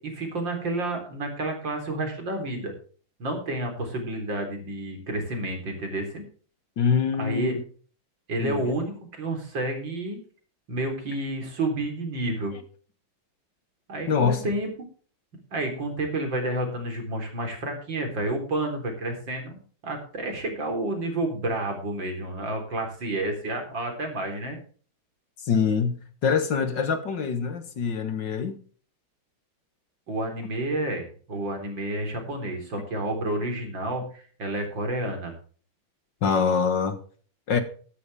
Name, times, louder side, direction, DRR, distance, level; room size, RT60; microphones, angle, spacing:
voice 1, 0.0-2.7 3.2-6.2 7.2-7.5 8.3-10.2 10.7-12.6 13.9-14.7 15.5-24.6 30.1-35.3, right 1 dB, 60° right, 4.4 m, -30 dB
voice 2, 6.8-7.6 8.4-8.6 12.5-12.6 14.1-14.4 25.4-28.6 36.2-37.0 37.5-37.6, left 6 dB, 60° left, 2.1 m, -24 dB
13.0 x 12.5 x 3.4 m
omnidirectional pair, 2.3 m